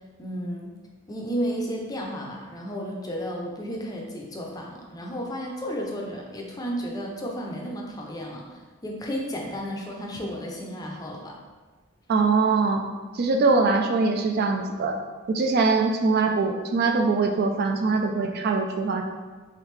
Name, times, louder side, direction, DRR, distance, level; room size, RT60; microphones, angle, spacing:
voice 1, 0.2-0.7 1.1-11.4, equal, 20° left, -1 dB, 0.5 m, -33 dB
voice 2, 12.1-12.8 13.1-14.9 15.3-19.0, right 4 dB, 50° right, 3 dB, 0.3 m, -22 dB
3.5 x 3.3 x 3.2 m, 1.4 s
head